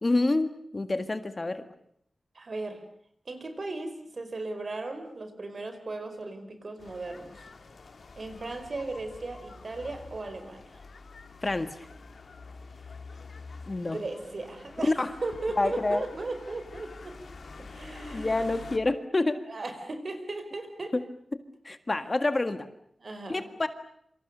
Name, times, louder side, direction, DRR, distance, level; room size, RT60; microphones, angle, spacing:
voice 1, 0.0-1.7 11.4-11.9 13.7-14.0 15.0-15.1 15.6-16.0 18.1-19.4 20.9-21.0 21.6-22.7 23.3-23.7, left 2 dB, 30° left, 10 dB, 1.8 m, -27 dB
voice 2, 2.3-2.8 3.2-7.5 8.1-10.8 13.9-17.2 17.7-18.4 19.5-20.9 23.0-23.5, right 2 dB, 50° right, 8 dB, 5.0 m, -37 dB
sound 1, 6.8-18.8, left 4 dB, 65° left, 2.5 m, -47 dB
28.0 x 26.0 x 6.8 m, 0.68 s
wide cardioid pair, 100°, 0 cm